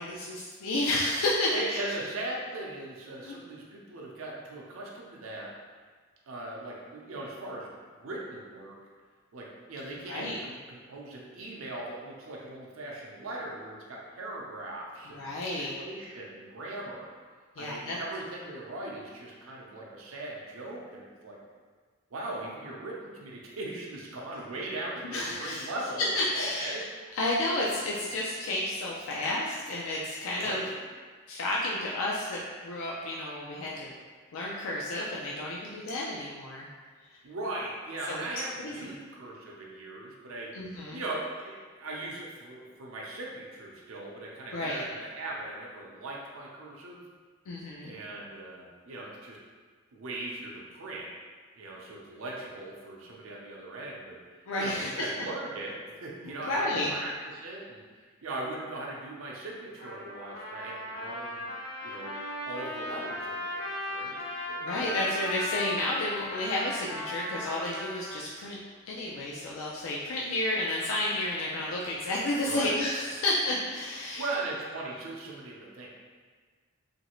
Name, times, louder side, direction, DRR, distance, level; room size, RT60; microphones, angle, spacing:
voice 1, 0.0-1.8 3.2-3.3 10.1-10.4 15.1-15.7 17.6-18.0 25.0-25.7 26.0-26.9 27.1-30.6 31.3-33.9 34.3-36.7 38.1-38.2 38.6-38.7 40.5-41.0 44.5-44.9 47.5-47.9 54.5-55.3 56.2-56.9 64.6-68.6 68.8-74.2, left 1 dB, 80° left, -4 dB, 0.4 m, -31 dB
voice 2, 1.5-5.5 6.3-8.8 9.3-17.1 17.6-21.4 22.1-26.0 26.3-26.8 30.4-30.7 37.2-40.5 40.9-47.0 47.8-49.4 49.9-51.1 51.6-54.2 54.6-57.8 58.2-61.4 61.8-62.2 62.4-64.2 64.5-64.7 72.4-72.8 74.1-75.9, right 2 dB, 80° right, -3 dB, 0.5 m, -39 dB
Trumpet, 59.8-68.2, left 1 dB, 55° left, 1.1 m, -37 dB
3.1 x 2.5 x 2.9 m, 1.5 s
head